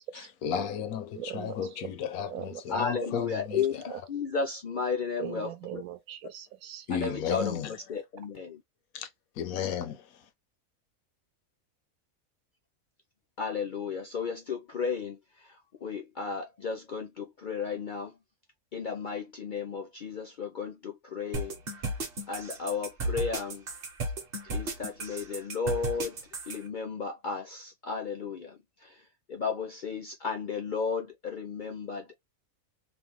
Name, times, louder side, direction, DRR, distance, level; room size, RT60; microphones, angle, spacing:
voice 1, 0.1-4.0 6.9-8.0 8.9-9.1 9.4-10.3, left 8 dB, 90° left, 1.1 m, -34 dB
voice 2, 1.2-1.5 2.3-2.6 3.1-3.2 3.9-4.0 5.2-6.8, right 12 dB, 85° right, 1.0 m, -40 dB
voice 3, 2.7-3.7 4.1-5.8 6.9-7.6 7.9-8.6 13.4-15.2 15.8-18.1 18.7-21.5 22.3-23.6 24.4-26.2 26.5-28.6 28.8-28.9 29.3-32.1, left 5 dB, 70° left, 0.4 m, -33 dB
sound 1, 21.3-26.6, right 2 dB, 50° right, 0.9 m, -34 dB
3.2 x 2.0 x 2.9 m
omnidirectional pair, 1.5 m